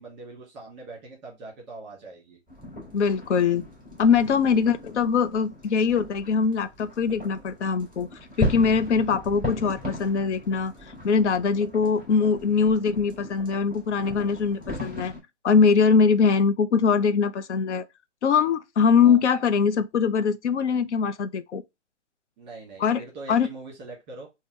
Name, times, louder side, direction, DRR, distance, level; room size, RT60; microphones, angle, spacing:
voice 1, 0.0-2.4 4.5-4.7 11.8-12.0 14.6-14.9 19.0-19.2 22.4-24.3, right 3 dB, 15° right, 1.7 m, -43 dB
sound 1, 2.5-15.2, left 1 dB, 10° left, 2.5 m, -37 dB
voice 2, 2.9-3.6 4.0-8.1 8.4-10.7 11.0-15.1 15.4-17.8 18.2-21.6 22.8-23.0 23.3-23.5, left 5 dB, 65° left, 0.6 m, -22 dB
5.2 x 2.2 x 3.0 m
hypercardioid pair, 150°, 37 cm